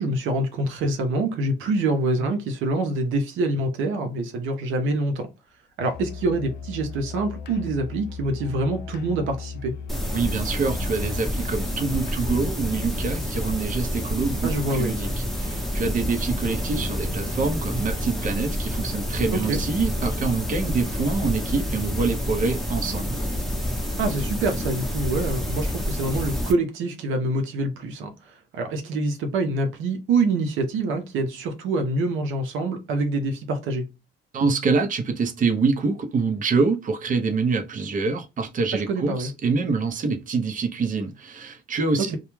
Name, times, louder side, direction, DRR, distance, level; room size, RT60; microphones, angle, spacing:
voice 1, 0.0-5.3 5.8-9.8 14.4-14.9 19.3-19.6 24.0-33.9 38.7-39.3 42.0-42.2, right 2 dB, 85° right, 0.6 m, -26 dB
Musical instrument, 5.8-12.5, left 6 dB, 55° left, 0.4 m, -37 dB
sound 1, 9.9-26.5, equal, ahead, 0.7 m, -28 dB
voice 2, 10.1-15.1 15.4-23.2 34.3-42.2, right 4 dB, 40° right, 0.6 m, -25 dB
2.2 x 2.1 x 3.0 m
cardioid pair, 90°, 20 cm